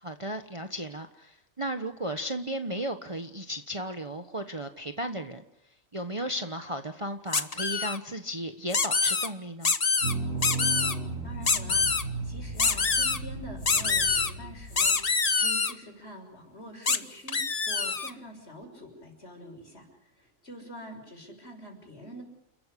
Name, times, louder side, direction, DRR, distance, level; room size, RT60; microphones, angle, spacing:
voice 1, 0.0-5.4 5.9-9.7, equal, 25° right, 6 dB, 1.2 m, -35 dB
sound 1, 7.3-8.0 8.7-9.3 9.6-10.1 10.4-10.9 11.4-12.0 12.6-13.2 13.7-14.3 14.8-15.7 16.9-17.0 17.3-18.1, left 4 dB, 30° left, 1.0 m, -25 dB
sound 2, 10.0-14.9, right 3 dB, 70° right, 8.2 m, -35 dB
voice 2, 11.2-17.4 17.7-22.2, equal, 50° left, 3 dB, 6.8 m, -45 dB
30.0 x 13.5 x 10.0 m, 0.86 s
omnidirectional pair, 1.4 m